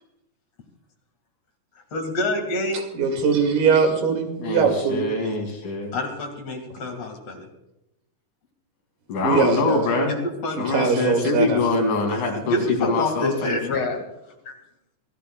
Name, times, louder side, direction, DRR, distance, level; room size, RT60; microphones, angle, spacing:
voice 1, 1.9-2.9 5.9-7.5 10.1-10.6 12.4-14.0, left 2 dB, 50° left, 3 dB, 3.1 m, -27 dB
voice 2, 2.9-5.1 9.2-9.9 10.6-11.6, right 5 dB, 85° right, 4 dB, 3.8 m, -21 dB
voice 3, 4.4-6.0 9.1-10.1 10.6-13.6, left 3 dB, 70° left, 2 dB, 4.3 m, -24 dB
26.0 x 15.5 x 2.3 m, 0.89 s
omnidirectional pair, 3.8 m